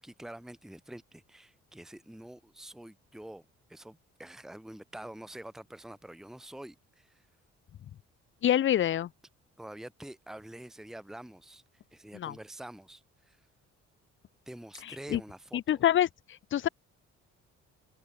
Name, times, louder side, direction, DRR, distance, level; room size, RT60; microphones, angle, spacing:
voice 1, 0.0-7.3 9.6-11.6 11.9-13.4 14.5-15.8, right 1 dB, ahead, 1.1 m, -47 dB
voice 2, 8.4-9.1 12.1-12.3 15.1-15.2 15.7-16.1 16.5-16.7, left 11 dB, 40° left, 0.5 m, -25 dB
cardioid pair, 90°, 30 cm